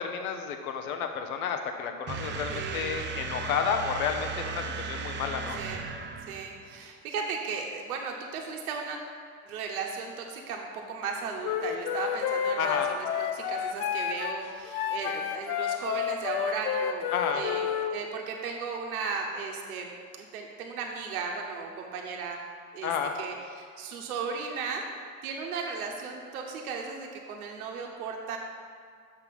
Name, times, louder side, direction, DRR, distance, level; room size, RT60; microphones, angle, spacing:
voice 1, 0.0-5.6 12.6-13.2 17.1-17.5 22.8-23.2, left 6 dB, 85° left, 5 dB, 0.9 m, -31 dB
sound 1, 2.1-6.8, right 5 dB, 25° right, 0.6 m, -36 dB
voice 2, 2.5-3.1 5.6-5.8 6.2-9.0 9.5-17.1 17.3-22.4 22.7-22.9 23.2-24.8 25.2-28.4, right 5 dB, 85° right, 1 dB, 1.0 m, -36 dB
Wind instrument woodwind instrument, 11.4-17.9, left 9 dB, 55° left, 0.6 m, -30 dB
6.7 x 5.9 x 5.4 m, 2.2 s
hypercardioid pair, 100°, 42 cm